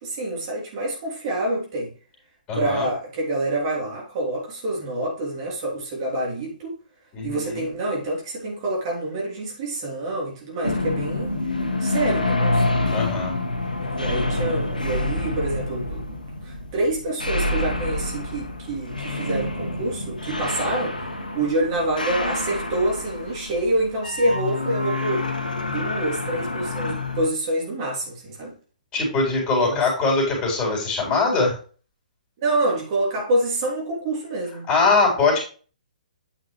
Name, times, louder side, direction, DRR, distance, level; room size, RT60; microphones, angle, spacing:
voice 1, 0.0-1.9 2.5-6.7 7.2-11.3 11.8-12.8 13.9-21.1 21.3-25.3 25.6-28.5 29.6-29.8 32.4-34.7, right 1 dB, 35° right, 3.4 m, -27 dB
voice 2, 2.5-2.9 7.1-7.7 12.9-13.4 28.9-31.6 34.7-35.4, left 3 dB, 20° left, 4.3 m, -22 dB
sound 1, 10.6-27.3, left 2 dB, 80° left, 1.7 m, -27 dB
9.1 x 5.9 x 3.3 m
figure-of-eight pair, 125°, 5 cm